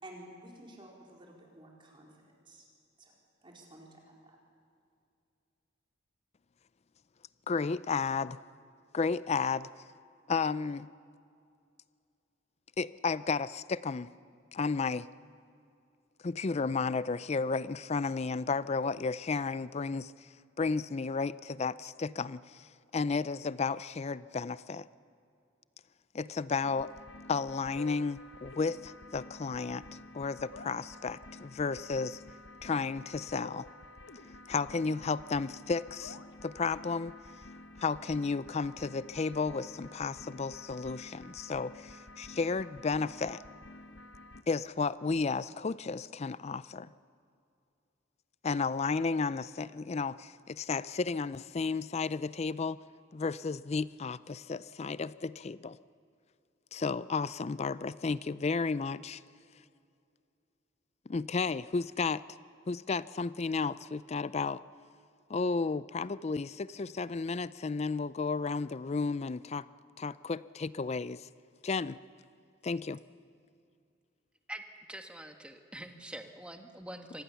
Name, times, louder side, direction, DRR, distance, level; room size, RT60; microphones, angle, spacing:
voice 1, 0.0-2.2 2.4-2.6 3.0-3.1 3.4-4.4, right 1 dB, 25° right, -2 dB, 4.4 m, -52 dB
voice 2, 7.5-8.4 8.9-9.7 10.3-10.9 12.8-14.1 14.5-15.1 16.2-20.1 20.6-22.7 22.9-24.9 26.1-26.9 27.3-29.8 30.1-32.2 32.6-33.7 34.5-37.1 37.8-43.4 44.5-46.9 48.4-52.8 53.1-55.8 56.7-59.2 61.1-62.2 62.7-64.6 65.3-69.7 70.0-71.3 71.6-72.0 72.6-73.0, left 4 dB, 35° left, 17 dB, 0.4 m, -33 dB
sound 1, 26.6-44.4, left 2 dB, 75° left, 1.1 m, -50 dB
voice 3, 74.9-77.2, right 1 dB, 5° right, 5 dB, 1.4 m, -44 dB
25.0 x 19.0 x 7.1 m, 2.4 s
head